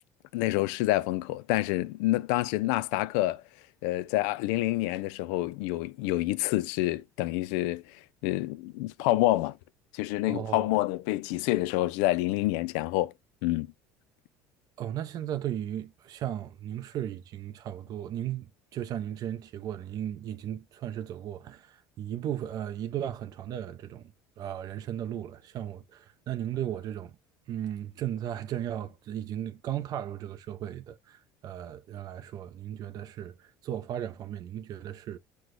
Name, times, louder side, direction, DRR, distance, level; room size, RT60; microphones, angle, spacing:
voice 1, 0.3-3.4 3.8-7.8 8.2-9.6 9.9-13.1 13.4-13.7, left 17 dB, 80° left, 0.4 m, -27 dB
voice 2, 10.3-10.7 14.8-24.1 24.4-27.2 27.5-35.2, right 11 dB, 50° right, 0.6 m, -36 dB
6.1 x 2.2 x 3.1 m
supercardioid pair, 110°, 8 cm